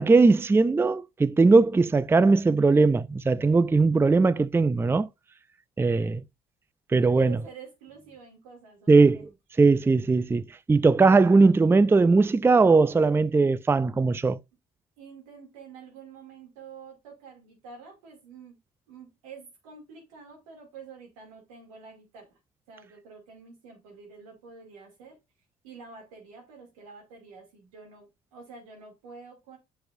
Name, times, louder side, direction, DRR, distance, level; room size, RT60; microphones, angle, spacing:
voice 1, 0.0-5.1 5.8-6.2 6.9-7.4 8.9-9.3 9.6-10.4 10.7-14.4, right 3 dB, 15° right, 0.4 m, -19 dB
voice 2, 7.0-9.3 15.0-18.6 18.9-22.4 22.7-25.2 25.6-29.6, right 5 dB, 90° right, 2.6 m, -48 dB
7.7 x 6.1 x 2.6 m
hypercardioid pair, 60°, 17 cm